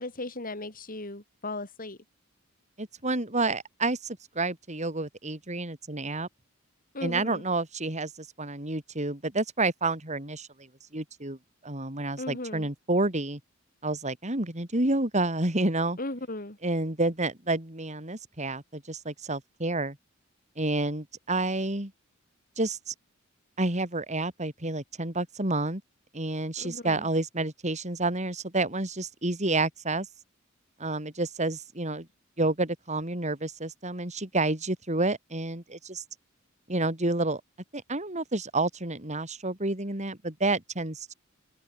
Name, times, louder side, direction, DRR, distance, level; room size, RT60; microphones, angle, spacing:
voice 1, 0.0-2.0 6.9-7.4 12.2-12.7 16.0-16.6 26.6-27.1, left 2 dB, 45° left, 4.9 m, -37 dB
voice 2, 2.8-6.3 7.0-10.5 10.9-11.4 11.6-13.4 13.8-16.0 16.6-20.0 20.6-21.9 22.6-22.9 23.6-25.8 26.1-30.1 30.8-32.1 32.4-36.0 36.7-37.4 37.7-41.1, right 2 dB, 35° right, 4.4 m, -29 dB
head